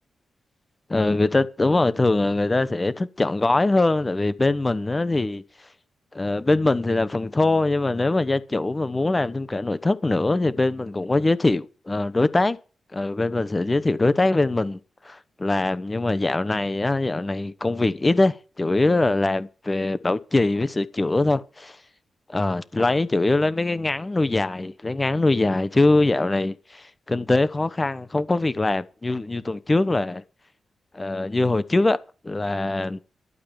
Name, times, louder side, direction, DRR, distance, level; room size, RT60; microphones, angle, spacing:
voice 1, 0.9-5.4 6.1-12.6 12.9-14.8 15.0-21.8 22.3-30.2 30.9-32.0 32.2-33.0, left 2 dB, 25° left, 1.0 m, -22 dB
12.5 x 8.8 x 7.1 m
cardioid pair, 85°, 0 cm